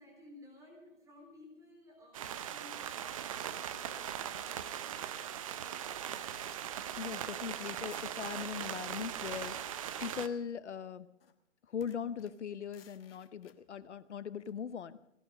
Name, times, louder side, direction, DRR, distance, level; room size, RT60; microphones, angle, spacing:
voice 1, 0.0-2.8 3.3-5.2, left 1 dB, 10° right, 0 dB, 3.8 m, -56 dB
sound 1, 2.1-10.3, right 10 dB, 25° right, 0.7 m, -40 dB
sound 2, 4.4-5.4 6.1-6.8 7.6-7.7 7.9-8.2 9.2-10.6 11.2-11.4 11.8-13.6 14.5-14.6, left 8 dB, 50° left, 1.4 m, -61 dB
voice 2, 7.0-9.5 10.0-11.1 11.7-15.0, left 7 dB, 65° left, 15 dB, 1.0 m, -40 dB
18.0 x 11.5 x 6.5 m, 0.81 s
figure-of-eight pair, 140°, 38 cm